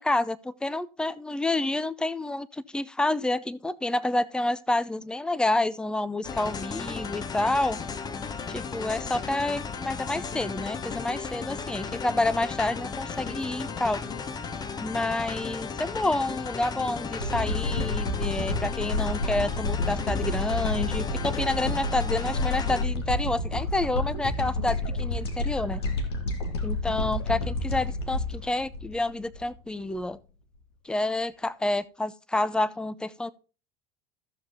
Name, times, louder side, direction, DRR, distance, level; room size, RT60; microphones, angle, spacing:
voice 1, 0.0-7.8 8.5-14.0 14.8-25.8 26.6-30.2 30.8-33.3, left 2 dB, 5° left, 0.6 m, -29 dB
sound 1, 6.2-22.8, left 5 dB, 30° left, 1.1 m, -35 dB
sound 2, 17.2-29.5 30.0-30.1, left 2 dB, 70° left, 1.7 m, -29 dB
14.0 x 7.1 x 2.7 m
figure-of-eight pair, 70°, 14 cm